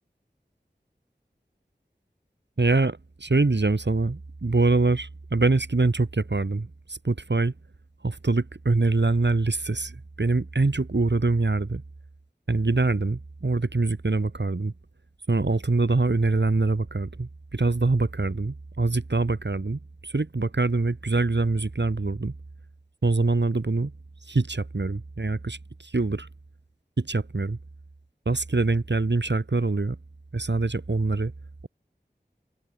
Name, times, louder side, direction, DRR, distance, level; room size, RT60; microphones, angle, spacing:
voice 1, 2.6-7.5 8.0-11.8 12.5-14.7 15.3-22.3 23.0-23.9 24.3-26.3 27.0-27.6 28.3-30.0 30.3-31.3, right 3 dB, 90° right, 2.3 m, -24 dB
wide cardioid pair, 40°, 18 cm